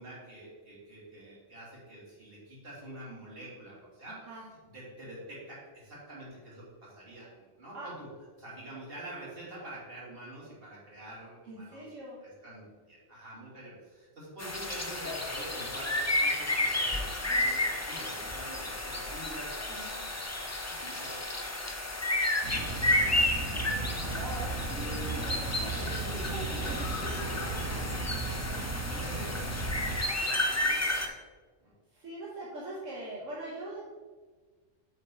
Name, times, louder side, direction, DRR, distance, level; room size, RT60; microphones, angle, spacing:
voice 1, 0.0-7.3 7.6-8.1 8.4-20.0 20.7-21.2 22.4-23.3 23.6-24.1 24.7-31.0 31.6-31.7, right 1 dB, 45° right, -7 dB, 2.6 m, -47 dB
voice 2, 11.4-12.2 17.3-17.6 19.7-20.0 28.9-29.2 31.9-33.8, right 1 dB, 75° right, -5 dB, 1.5 m, -42 dB
sound 1, 14.4-31.1, left 1 dB, 25° left, 0.4 m, -32 dB
sound 2, 22.4-30.0, right 3 dB, 90° right, 1.5 m, -36 dB
sound 3, 23.4-30.5, left 4 dB, 80° left, 1.2 m, -45 dB
7.9 x 4.2 x 4.5 m, 1.4 s
omnidirectional pair, 1.3 m